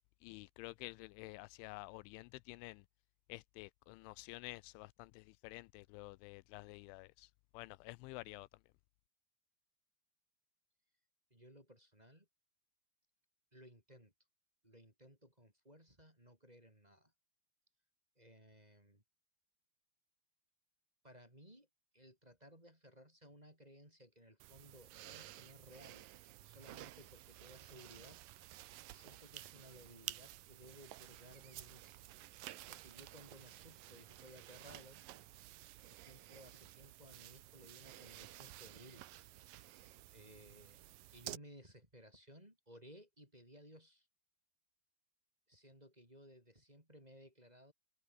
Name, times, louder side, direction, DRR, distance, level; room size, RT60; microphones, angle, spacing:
voice 1, 0.2-2.9 3.3-8.5, left 22 dB, 85° left, 3.0 m, -50 dB
voice 2, 11.3-12.3 13.5-14.1 14.6-17.1 18.2-19.0 21.0-21.7 21.9-26.1 26.4-28.2 28.9-32.1 32.7-35.1 35.8-39.1 40.1-44.1 45.5-47.7, equal, 10° right, 5.3 m, -60 dB
sound 1, 24.4-41.4, right 15 dB, 80° right, 2.0 m, -53 dB
open air
omnidirectional pair, 5.4 m